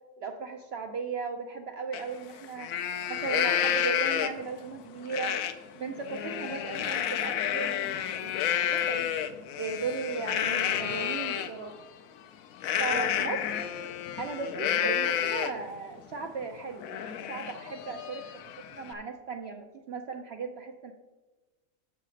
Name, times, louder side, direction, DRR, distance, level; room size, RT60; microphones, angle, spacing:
voice 1, 0.2-2.7 3.1-5.4 5.7-9.1 9.6-11.8 12.8-13.4 14.2-18.3 18.6-20.9, right 4 dB, 60° right, 4 dB, 0.7 m, -36 dB
Livestock farm animals working animals, 1.9-2.0 2.4-4.5 5.1-5.5 5.9-11.5 12.6-15.7 16.1-16.2 16.6-18.9, left 9 dB, 80° left, 1.0 m, -30 dB
6.5 x 5.7 x 6.2 m, 1.2 s
omnidirectional pair, 1.5 m